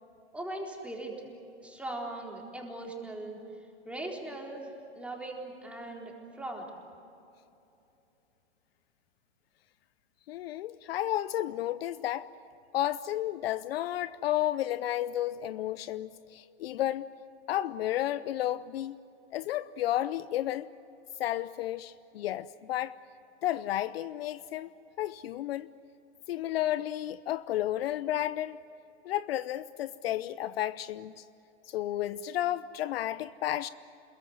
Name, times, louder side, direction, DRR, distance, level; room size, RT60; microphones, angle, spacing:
voice 1, 0.3-1.1 1.6-3.4 3.9-4.7 4.9-6.7, right 2 dB, 5° right, 4.0 m, -39 dB
voice 2, 10.3-12.3 12.7-17.1 17.5-19.0 19.3-20.7 21.2-23.0 23.4-24.7 25.0-25.7 26.3-28.6 29.0-31.2 31.7-33.7, left 13 dB, 60° left, 0.7 m, -32 dB
27.0 x 22.0 x 7.9 m
hypercardioid pair, 135°, 34 cm